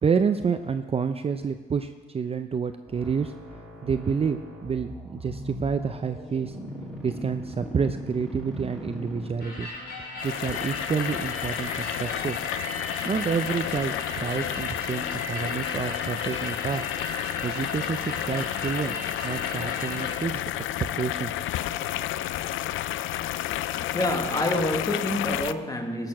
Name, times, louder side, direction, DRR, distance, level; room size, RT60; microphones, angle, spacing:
voice 1, 0.0-3.3 3.8-6.6 7.0-9.7 10.2-12.4 13.1-16.8 17.4-19.0 19.2-20.4 21.0-21.3, right 6 dB, 30° right, 9 dB, 0.5 m, -28 dB
sound 1, 2.9-9.8, left 1 dB, ahead, 3.0 m, -40 dB
sound 2, 9.4-20.1, left 1 dB, 50° left, 3.3 m, -36 dB
sound 3, 10.2-25.5, left 13 dB, 80° left, 0.4 m, -31 dB
voice 2, 23.9-26.1, left 1 dB, 20° left, 4 dB, 1.5 m, -27 dB
13.5 x 6.7 x 5.9 m, 1.4 s
cardioid pair, 90°, 20 cm